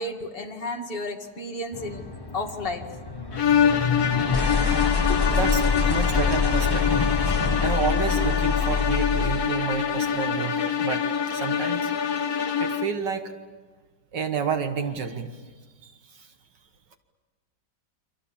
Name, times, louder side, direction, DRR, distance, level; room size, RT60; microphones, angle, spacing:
voice 1, 0.0-2.0 2.3-2.8 5.1-5.4, left 2 dB, 30° left, 2 dB, 2.3 m, -32 dB
sound 1, 1.7-9.6, left 5 dB, 15° left, 1.2 m, -26 dB
sound 2, 3.3-13.0, left 7 dB, 55° left, 2.2 m, -25 dB
voice 2, 5.3-7.0 7.6-11.9 12.6-13.3 14.1-15.4 15.8-16.3, right 6 dB, 70° right, 7 dB, 1.9 m, -30 dB
29.5 x 25.5 x 7.2 m, 1.4 s
omnidirectional pair, 2.0 m